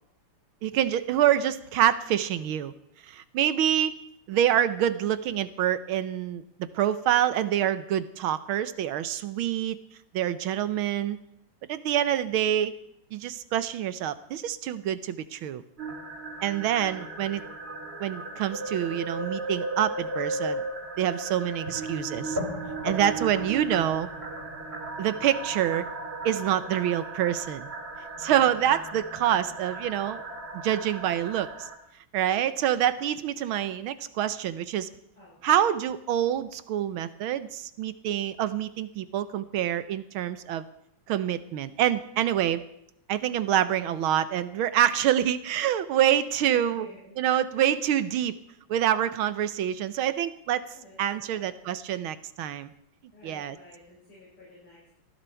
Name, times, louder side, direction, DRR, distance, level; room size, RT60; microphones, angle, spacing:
voice 1, 0.6-2.7 3.1-3.9 4.3-6.4 6.7-9.8 10.1-11.2 11.7-12.8 13.1-15.6 16.4-17.4 18.0-20.6 21.0-22.4 22.8-24.1 25.0-25.9 26.2-27.7 28.2-30.2 30.6-31.7 32.1-34.9 35.4-40.7 41.1-42.6 43.1-46.9 47.2-48.4 48.7-50.6 51.0-52.7 53.2-53.6, right 11 dB, 80° right, 14 dB, 1.6 m, -26 dB
sound 1, 15.8-31.7, right 2 dB, 30° right, 2.0 m, -36 dB
voice 2, 46.4-47.2 50.7-51.6 53.1-54.9, left 1 dB, 70° left, -8 dB, 7.9 m, -52 dB
19.5 x 15.0 x 4.5 m, 0.75 s
omnidirectional pair, 2.3 m